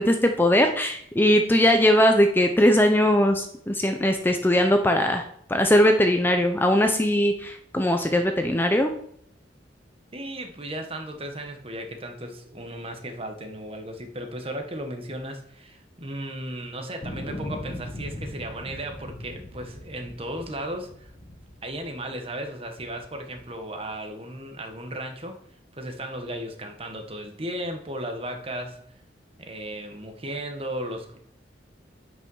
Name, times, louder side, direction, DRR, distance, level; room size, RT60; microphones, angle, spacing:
voice 1, 0.0-5.2 5.5-8.9, left 1 dB, 10° left, 5 dB, 0.6 m, -20 dB
voice 2, 10.1-21.1 21.6-25.4 25.7-28.8 29.4-31.2, right 1 dB, 30° right, 5 dB, 1.2 m, -35 dB
sound 1, 17.0-22.2 22.8-23.6, left 1 dB, 35° left, 1.0 m, -39 dB
9.1 x 5.4 x 5.5 m, 0.69 s
head